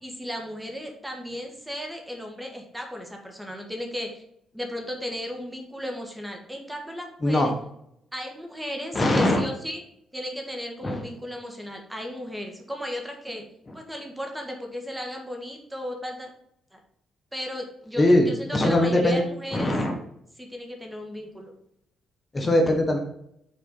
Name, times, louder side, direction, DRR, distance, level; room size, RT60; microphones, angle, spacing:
voice 1, 0.0-4.2 4.5-7.5 8.1-9.8 10.1-13.5 13.7-16.3 16.7-16.8 17.3-19.7 20.4-21.5, equal, 5° right, 3 dB, 1.6 m, -35 dB
voice 2, 7.2-7.5 8.9-9.5 10.8-11.0 13.7-13.8 18.0-19.2 19.5-19.9 22.3-23.0, left 1 dB, 25° left, 2 dB, 1.5 m, -21 dB
6.4 x 4.5 x 5.7 m, 0.74 s
cardioid pair, 90°, 0 cm